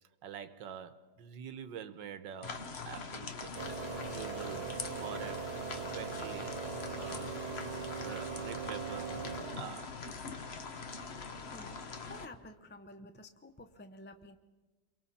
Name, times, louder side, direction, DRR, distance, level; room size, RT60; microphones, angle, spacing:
voice 1, 0.2-3.5 4.1-7.4 8.0-9.2 9.5-10.0, right 8 dB, 90° right, 1.7 m, -46 dB
sound 1, 2.4-12.3, left 4 dB, 45° left, 0.9 m, -43 dB
Electric air compressor distance mono, 3.5-9.9, right 6 dB, 65° right, 1.5 m, -41 dB
voice 2, 12.1-14.4, left 2 dB, 15° left, 0.3 m, -51 dB
29.0 x 23.5 x 4.2 m
omnidirectional pair, 1.9 m